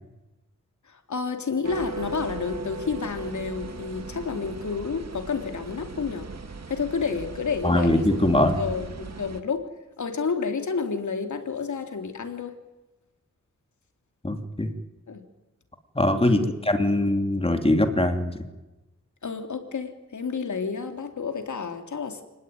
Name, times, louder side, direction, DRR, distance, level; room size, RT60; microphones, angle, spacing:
voice 1, 0.9-6.3 6.7-8.3 8.6-9.7 10.0-12.6 15.1-15.2 16.2-16.5 19.2-22.2, left 5 dB, 75° left, 5 dB, 3.4 m, -30 dB
sound 1, 1.6-9.4, right 4 dB, 60° right, 2.4 m, -39 dB
voice 2, 7.6-8.6 14.2-14.7 15.9-18.4, left 1 dB, 20° left, 6 dB, 3.0 m, -22 dB
29.5 x 20.0 x 9.5 m, 1.1 s
wide cardioid pair, 105°, 29 cm